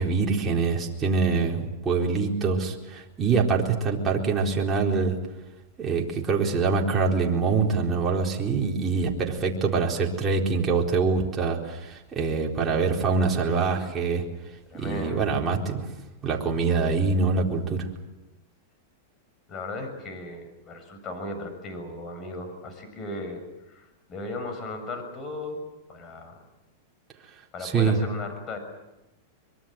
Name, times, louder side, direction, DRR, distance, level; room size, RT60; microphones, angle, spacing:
voice 1, 0.0-5.2 5.8-14.2 14.7-15.9 16.2-17.9 27.6-28.0, right 4 dB, 20° right, -1 dB, 4.2 m, -24 dB
voice 2, 14.7-15.3 19.5-23.4 23.7-26.3 27.5-28.6, left 2 dB, 30° left, 6 dB, 6.8 m, -36 dB
24.0 x 23.0 x 7.8 m, 0.98 s
supercardioid pair, 135°, 0 cm